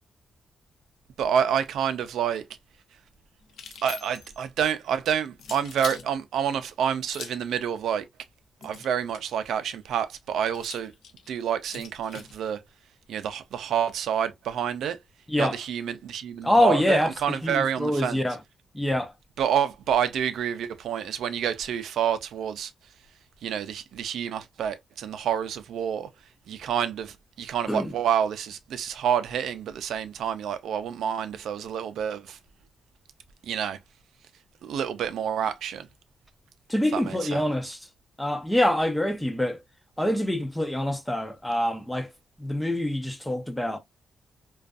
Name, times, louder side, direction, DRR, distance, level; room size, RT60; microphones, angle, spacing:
voice 1, 1.2-2.5 3.8-8.1 8.6-10.9 11.3-12.6 13.1-15.0 15.4-18.2 19.4-22.7 23.4-26.1 26.5-32.4 33.4-33.8 34.6-35.9 36.9-37.5, right 8 dB, 85° right, 0.3 m, -28 dB
sound 1, 3.5-4.4 5.4-6.1 7.0-7.5 8.6-9.4 10.5-12.4, left 6 dB, 75° left, 0.5 m, -42 dB
voice 2, 16.4-17.1 17.4-18.4 18.7-19.1 27.7-27.9 36.7-37.8 38.2-39.6 40.0-42.1 42.4-43.8, left 1 dB, 5° left, 0.4 m, -25 dB
2.5 x 2.3 x 2.3 m
cardioid pair, 130°, 0 cm